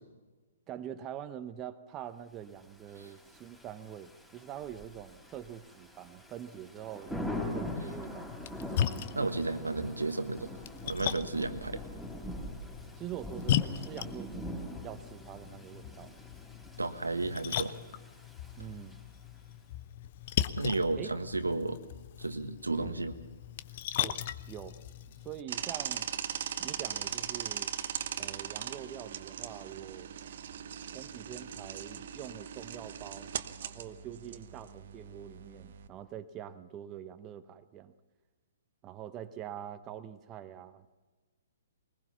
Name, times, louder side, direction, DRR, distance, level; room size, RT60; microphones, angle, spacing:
voice 1, 0.7-8.3 11.7-11.9 13.0-16.1 18.6-19.0 21.0-21.1 22.7-22.9 24.0-24.2 24.5-24.7 25.1-26.1 26.6-27.7 28.2-30.1 30.9-33.3 33.6-37.9 38.8-40.9, right 10 dB, 25° right, 9 dB, 1.0 m, -44 dB
Thunder / Rain, 2.8-19.4, left 1 dB, 5° left, 3.9 m, -43 dB
Splash splatter, 8.3-25.4, left 10 dB, 45° left, 0.8 m, -38 dB
voice 2, 9.1-10.5 10.8-11.8 16.8-17.7 20.6-21.8 22.2-23.1, right 3 dB, 80° right, 10 dB, 1.5 m, -32 dB
sound 1, 25.5-35.9, right 9 dB, 50° right, 1.1 m, -39 dB
22.0 x 20.5 x 5.8 m, 1.3 s
figure-of-eight pair, 120°, 0 cm